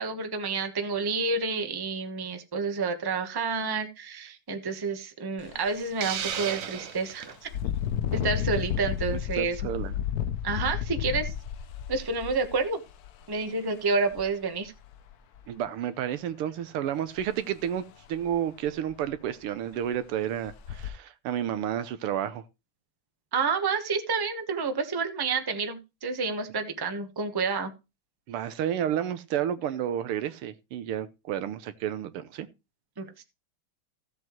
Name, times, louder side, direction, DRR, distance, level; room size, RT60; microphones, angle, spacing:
voice 1, 0.0-7.5 8.1-9.6 10.4-11.3 11.9-12.8 13.3-14.7 23.3-27.7 33.0-33.2, right 4 dB, 15° right, 0.7 m, -29 dB
Engine, 5.4-5.6 6.1-6.2 7.5-13.2 14.1-14.2 14.7-15.4 17.2-17.3 17.7-17.8 18.3-18.4 18.7-19.2 19.7-19.9 20.5-20.9, left 10 dB, 65° left, 1.0 m, -32 dB
Hiss, 6.0-7.4, right 8 dB, 60° right, 0.8 m, -33 dB
voice 2, 9.1-10.0 15.5-22.4 28.3-32.5, right 10 dB, 85° right, 1.8 m, -31 dB
15.5 x 7.6 x 3.1 m
omnidirectional pair, 2.4 m